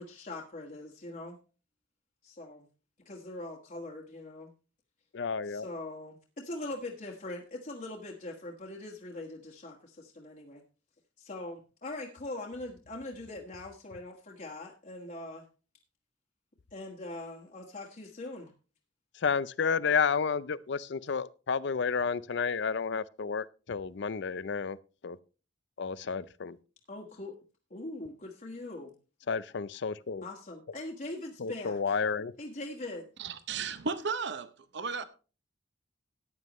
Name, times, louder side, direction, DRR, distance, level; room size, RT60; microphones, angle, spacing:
voice 1, 0.0-1.4 2.2-2.7 3.0-4.5 5.4-10.6 11.2-15.4 16.7-18.5 26.9-27.4 27.7-28.9 30.2-32.0 32.4-33.0, left 2 dB, 40° left, 1.6 m, -42 dB
voice 2, 5.1-5.7 19.1-24.8 25.0-25.2 25.8-26.6 29.3-30.3 31.4-32.3, left 5 dB, 65° left, 0.5 m, -31 dB
voice 3, 33.2-35.0, right 5 dB, 65° right, 0.8 m, -34 dB
14.5 x 9.7 x 3.1 m
head